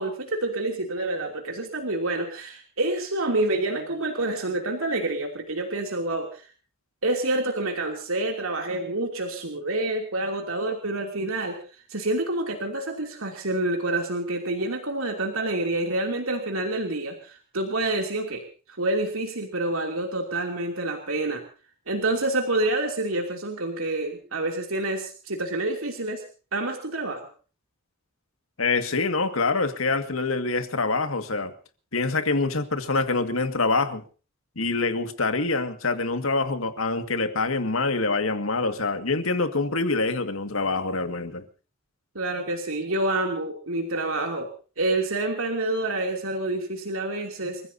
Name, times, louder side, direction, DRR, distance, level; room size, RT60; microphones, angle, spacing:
voice 1, 0.0-6.5 7.0-18.4 18.8-21.4 21.9-26.2 26.5-27.3 42.1-44.5 44.8-47.6, right 2 dB, 85° right, 3.0 m, -28 dB
voice 2, 28.6-31.5 31.9-34.0 34.6-41.4, left 3 dB, 75° left, 2.0 m, -25 dB
29.5 x 15.5 x 2.8 m
head